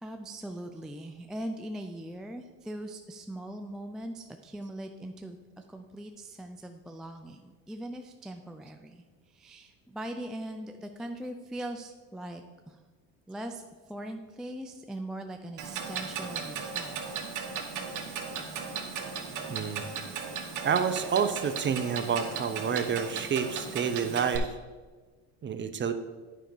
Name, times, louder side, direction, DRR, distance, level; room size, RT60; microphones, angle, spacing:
voice 1, 0.0-5.4 5.7-12.8 13.3-13.6 13.9-17.1, right 1 dB, ahead, 4 dB, 0.3 m, -40 dB
Clock, 15.6-24.4, right 6 dB, 50° right, 1.3 m, -36 dB
voice 2, 19.5-19.8 20.6-24.5 25.4-25.9, right 7 dB, 30° right, 10 dB, 0.7 m, -29 dB
9.1 x 5.2 x 4.6 m, 1.4 s
supercardioid pair, 95°, 39 cm